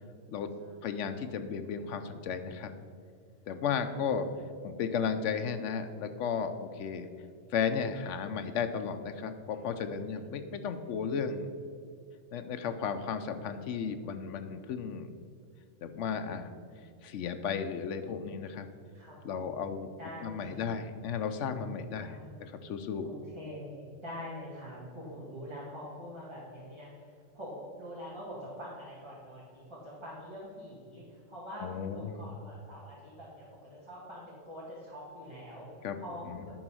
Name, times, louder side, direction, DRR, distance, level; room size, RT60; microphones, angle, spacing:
voice 1, 0.8-2.7 3.5-4.3 4.6-7.1 7.5-11.5 12.3-15.1 15.8-16.5 17.0-18.7 19.2-19.9 20.2-23.1 31.6-32.3 35.8-36.0 36.3-36.4, left 6 dB, 75° left, 8 dB, 1.0 m, -34 dB
voice 2, 3.8-4.4 18.9-19.6 20.0-20.7 22.0-22.3 23.0-31.7 31.9-35.7 36.0-36.6, equal, 20° right, -8 dB, 1.9 m, -45 dB
10.5 x 4.0 x 6.2 m, 2.3 s
omnidirectional pair, 1.3 m